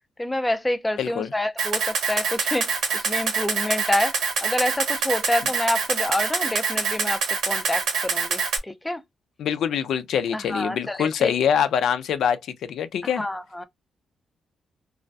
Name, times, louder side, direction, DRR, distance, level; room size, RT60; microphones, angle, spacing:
voice 1, 0.2-9.0 10.3-11.3 13.2-13.6, left 1 dB, 10° left, 0.4 m, -27 dB
voice 2, 1.0-1.3 9.4-13.2, left 8 dB, 80° left, 0.3 m, -24 dB
Camera, 1.6-8.6, right 5 dB, 80° right, 1.0 m, -25 dB
2.3 x 2.2 x 2.5 m
cardioid pair, 105°, 0 cm